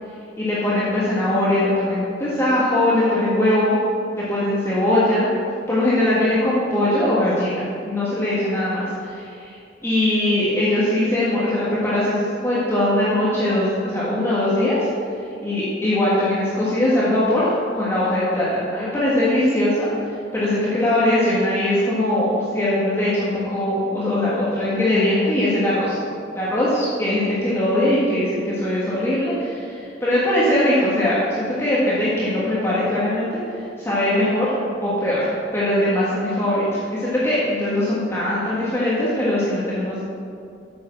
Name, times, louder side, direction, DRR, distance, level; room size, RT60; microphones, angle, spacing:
voice 1, 0.4-3.8 4.2-5.3 5.7-9.6 9.8-14.8 15.4-18.5 18.7-19.9 20.3-26.0 26.3-33.3 33.5-35.3 35.5-40.0, left 1 dB, 15° left, -9 dB, 1.7 m, -21 dB
7.9 x 7.1 x 7.5 m, 2.5 s
head